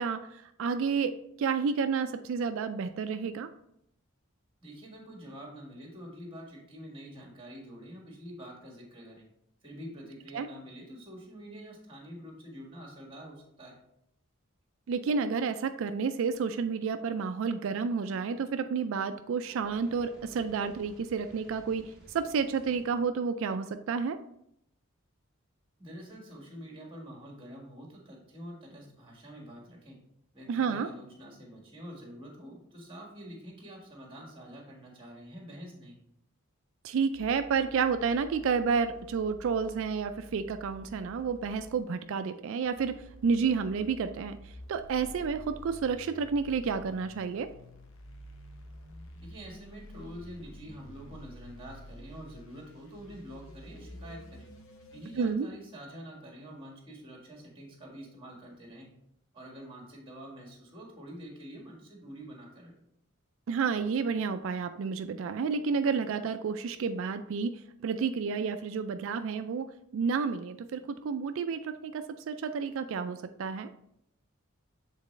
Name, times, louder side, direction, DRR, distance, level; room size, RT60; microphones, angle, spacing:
voice 1, 0.0-3.5 10.3-10.5 14.9-24.2 30.5-30.9 36.8-47.5 55.2-55.5 63.5-73.7, right 5 dB, 65° right, 10 dB, 0.3 m, -30 dB
voice 2, 4.6-9.3 9.6-13.8 25.8-30.0 30.3-36.0 49.2-54.5 54.9-58.9 59.3-62.7, equal, 25° right, -1 dB, 1.6 m, -46 dB
Fire, 19.4-23.1, equal, ahead, 1.7 m, -56 dB
sound 1, 37.1-41.8 42.6-55.3, equal, 65° left, 0.8 m, -50 dB
7.3 x 4.1 x 3.1 m, 0.76 s
head